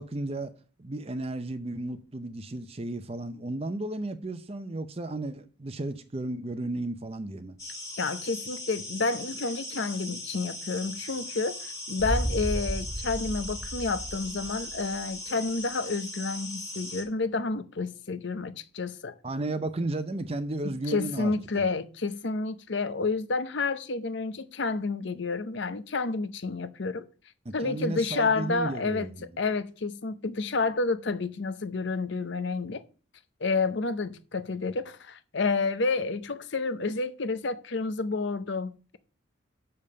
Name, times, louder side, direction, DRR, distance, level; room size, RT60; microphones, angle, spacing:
voice 1, 0.0-7.6 19.2-21.6 27.5-29.3, right 2 dB, 30° right, 0.6 m, -34 dB
sound 1, 7.6-17.0, left 1 dB, 15° left, 1.6 m, -39 dB
voice 2, 8.0-19.1 20.6-27.0 27.5-32.8 33.4-39.0, left 3 dB, 60° left, 0.7 m, -30 dB
Boom, 12.0-15.0, equal, 5° right, 2.0 m, -33 dB
6.7 x 5.4 x 6.7 m
head